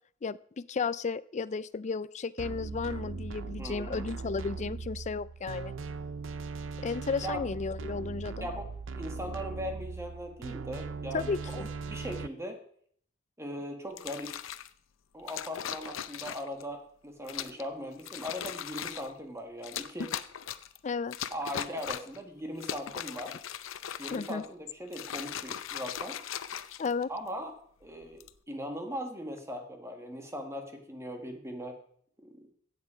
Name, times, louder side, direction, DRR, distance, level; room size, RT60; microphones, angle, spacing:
voice 1, 0.2-5.7 6.8-8.5 11.1-11.7 20.8-21.2 24.1-24.4 26.8-27.1, left 4 dB, 35° left, 17 dB, 0.4 m, -33 dB
sound 1, 2.4-12.3, right 4 dB, 70° right, 0.6 m, -39 dB
voice 2, 3.6-4.0 7.2-7.5 8.4-12.6 13.4-14.4 15.1-20.1 21.3-23.4 24.0-26.2 27.1-27.6 27.8-31.8 32.2-32.5, equal, 15° right, 4 dB, 1.8 m, -39 dB
sound 2, 13.9-14.7 15.3-16.6 17.3-17.6 18.0-19.1 19.6-20.8 21.1-22.2 22.5-24.5 24.9-27.3 28.0-28.4, left 9 dB, 90° left, 0.6 m, -39 dB
15.5 x 8.5 x 5.0 m, 0.62 s
head